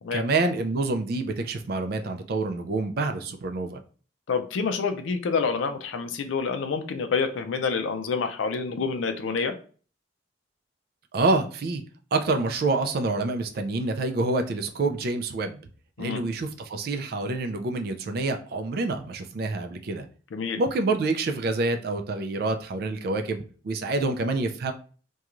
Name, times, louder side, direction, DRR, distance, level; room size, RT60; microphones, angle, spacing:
voice 1, 0.1-3.8 11.1-11.8 12.1-15.6 16.0-20.1 20.6-24.7, right 3 dB, 50° right, 6 dB, 0.4 m, -27 dB
voice 2, 4.3-9.5 16.0-16.2 20.3-20.6, left 5 dB, 80° left, 7 dB, 0.4 m, -27 dB
2.4 x 2.3 x 2.9 m, 0.40 s
head